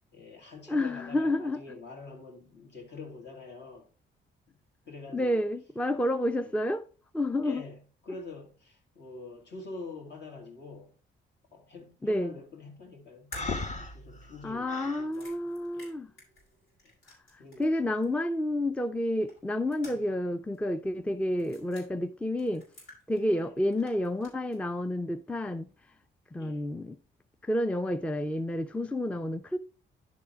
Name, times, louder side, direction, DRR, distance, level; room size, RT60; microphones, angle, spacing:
voice 1, 0.1-3.9 4.5-4.6 4.9-5.4 6.3-6.6 7.4-10.9 11.5-15.3 15.7-15.9 16.8-16.9 17.4-17.7 23.3-23.5 26.4-26.7, left 3 dB, 60° left, 2.5 m, -46 dB
voice 2, 0.7-1.8 5.1-6.8 7.1-7.6 12.0-12.4 14.4-16.1 17.3-22.7 23.1-25.7 26.3-27.0 27.4-29.6, left 1 dB, 5° left, 0.4 m, -30 dB
sound 1, 13.3-17.8 18.0-18.1 19.3-20.3 20.5-20.6 21.3-21.9 22.4-23.5 23.7-24.6, left 1 dB, 90° left, 4.6 m, -49 dB
Breathing, 13.3-15.1, left 3 dB, 35° left, 1.0 m, -36 dB
10.5 x 3.7 x 4.4 m
cardioid pair, 90°, 20 cm